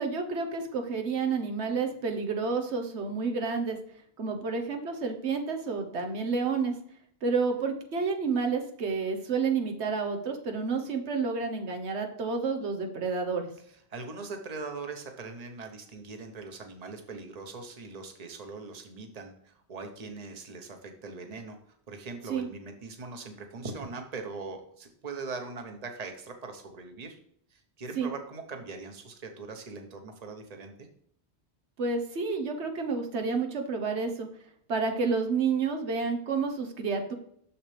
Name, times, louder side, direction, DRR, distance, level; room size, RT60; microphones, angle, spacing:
voice 1, 0.0-3.8 4.2-6.8 7.2-13.5 22.3-22.5 28.0-28.1 31.8-34.3 34.7-37.1, right 4 dB, 85° right, 4 dB, 1.3 m, -30 dB
voice 2, 13.9-27.2 27.5-30.9, right 4 dB, 40° right, 5 dB, 1.1 m, -41 dB
7.1 x 6.6 x 3.3 m, 0.66 s
omnidirectional pair, 1.1 m